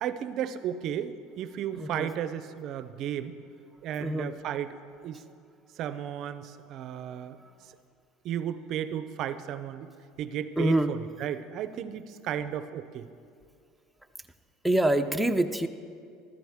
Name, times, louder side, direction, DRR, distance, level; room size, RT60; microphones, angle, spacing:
voice 1, 0.0-3.4 3.8-4.8 5.0-5.2 5.8-7.4 8.2-9.9 10.2-13.1, right 10 dB, 55° right, 13 dB, 0.5 m, -34 dB
voice 2, 1.7-2.1 4.0-4.3 10.6-10.9 14.6-15.7, right 1 dB, ahead, 5 dB, 0.6 m, -25 dB
15.0 x 13.0 x 3.6 m, 2.3 s
supercardioid pair, 105°, 0 cm